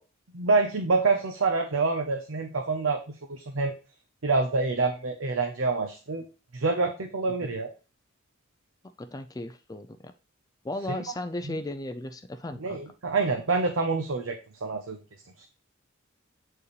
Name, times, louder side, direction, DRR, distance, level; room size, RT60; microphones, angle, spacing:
voice 1, 0.3-3.0 3.3-3.7 4.2-6.2 6.5-7.7 10.9-11.0 11.4-11.6 12.6-15.0 15.4-15.5, right 3 dB, 80° right, 5 dB, 0.8 m, -27 dB
voice 2, 9.0-10.1 10.6-12.8, left 1 dB, 20° left, 8 dB, 0.4 m, -36 dB
8.5 x 4.7 x 3.2 m, 0.34 s
head